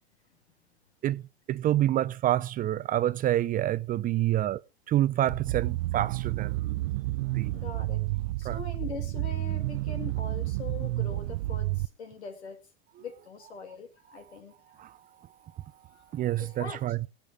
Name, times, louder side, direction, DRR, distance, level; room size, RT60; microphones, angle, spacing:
voice 1, 1.5-4.6 4.9-6.8 7.4-7.5 8.4-8.6 16.1-17.0, right 13 dB, 25° right, 0.7 m, -27 dB
sound 1, 5.3-11.8, right 18 dB, 60° right, 0.6 m, -30 dB
voice 2, 7.2-12.6 13.0-14.9 15.9-17.0, left 5 dB, 85° left, 5.9 m, -43 dB
24.0 x 8.6 x 3.6 m
hypercardioid pair, 120°, 32 cm